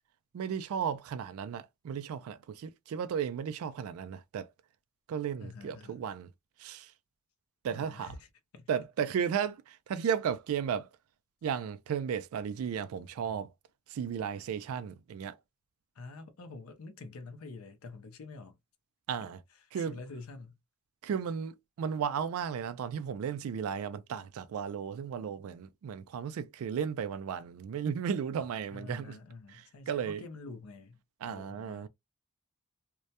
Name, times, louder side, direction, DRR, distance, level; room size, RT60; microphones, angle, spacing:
voice 1, 0.3-4.5 5.1-6.3 6.6-6.9 7.6-8.1 8.7-10.9 11.4-13.5 13.9-15.4 19.1-19.4 19.7-20.0 21.0-29.2 29.5-30.2 31.2-31.9, right 7 dB, 70° right, 0.3 m, -34 dB
voice 2, 5.4-6.0 7.7-8.3 8.5-8.7 16.0-18.6 19.6-20.6 28.7-31.9, left 3 dB, 75° left, 0.5 m, -47 dB
2.2 x 2.0 x 2.7 m
head